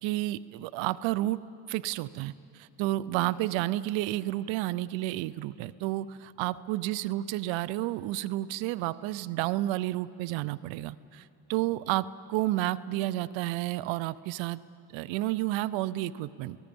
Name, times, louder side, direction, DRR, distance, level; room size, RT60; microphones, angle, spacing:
voice 1, 0.0-1.4 1.7-14.6 14.9-16.6, right 16 dB, 85° right, 19 dB, 0.6 m, -31 dB
29.5 x 19.0 x 5.3 m, 2.9 s
supercardioid pair, 75°, 44 cm